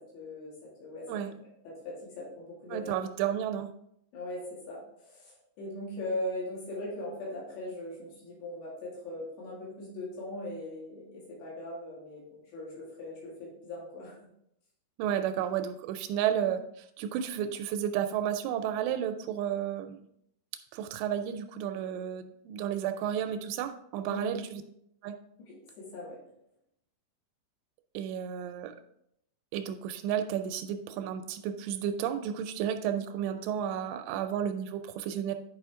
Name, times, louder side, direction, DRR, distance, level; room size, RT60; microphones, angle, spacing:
voice 1, 0.1-0.5 0.8-1.1 1.6-3.0 4.1-12.2 12.5-14.2 24.1-24.3 25.4-26.2, left 1 dB, 85° left, -6 dB, 4.5 m, -39 dB
voice 2, 2.7-3.7 15.0-20.0 20.7-24.6 25.0-25.2 27.9-28.7 29.5-35.4, right 9 dB, 85° right, 7 dB, 2.7 m, -32 dB
10.0 x 5.0 x 3.6 m, 0.75 s
omnidirectional pair, 4.9 m